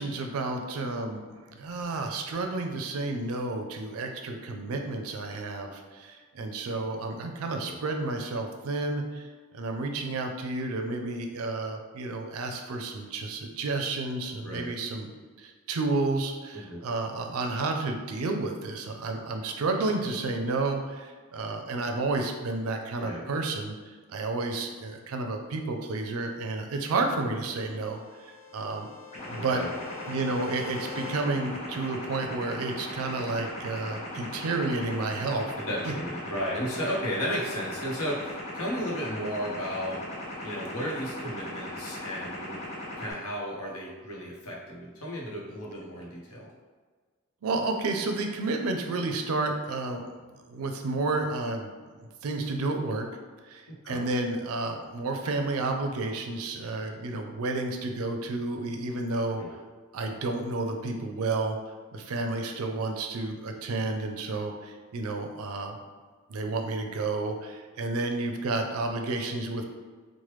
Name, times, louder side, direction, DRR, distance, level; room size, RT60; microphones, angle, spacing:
voice 1, 0.0-9.3 9.5-15.1 15.4-23.7 24.1-28.9 29.3-29.6 30.1-35.5 47.4-50.0 50.5-51.7 52.0-53.1 53.4-59.4 59.9-61.6 61.9-65.8 66.3-69.6, right 3 dB, 80° right, 4 dB, 0.4 m, -31 dB
voice 2, 14.4-14.7 16.5-16.8 23.0-23.3 29.3-29.7 35.7-40.0 40.4-42.6 43.0-46.5 53.7-54.1 59.3-59.5, equal, 80° left, -4 dB, 0.8 m, -34 dB
sound 1, 26.2-31.2, left 5 dB, 15° left, 1.1 m, -46 dB
sound 2, 29.1-43.1, left 1 dB, 30° left, 0.8 m, -39 dB
3.1 x 2.1 x 3.1 m, 1.5 s
head